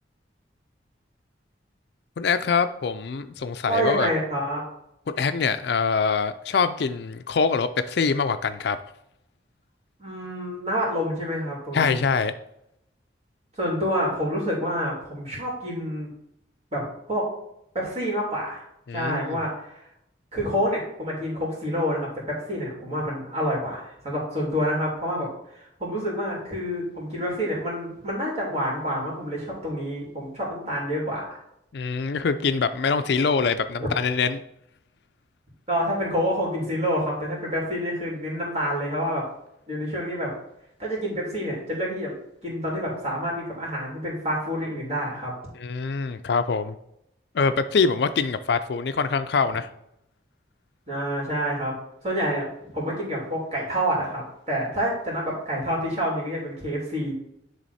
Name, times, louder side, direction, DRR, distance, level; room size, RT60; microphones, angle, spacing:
voice 1, 2.2-4.1 5.2-8.8 11.7-12.3 18.9-19.4 31.7-34.4 45.6-46.8 47.3-49.7, left 5 dB, 60° left, 10 dB, 0.4 m, -24 dB
voice 2, 3.7-4.6 10.0-12.0 13.6-16.1 16.7-16.8 17.1-17.3 17.7-18.7 18.9-19.8 20.3-31.2 33.8-33.9 35.7-39.2 39.7-40.3 40.8-42.1 42.4-45.3 50.9-51.7 52.0-52.5 52.7-57.1, equal, 35° right, -4 dB, 2.9 m, -28 dB
10.5 x 3.5 x 4.2 m, 0.77 s
head